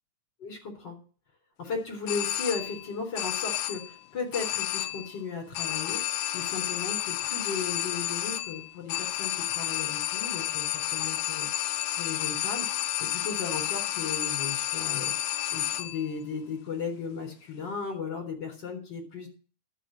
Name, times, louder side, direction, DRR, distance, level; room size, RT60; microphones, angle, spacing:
voice 1, 0.4-1.0 1.6-12.7 13.0-19.3, left 5 dB, 35° left, 2 dB, 4.2 m, -36 dB
sound 1, 2.1-2.9 3.2-4.0 4.3-5.2 5.5-16.1, left 13 dB, 80° left, 2.0 m, -31 dB
12.0 x 5.9 x 7.5 m, 0.39 s
omnidirectional pair, 3.5 m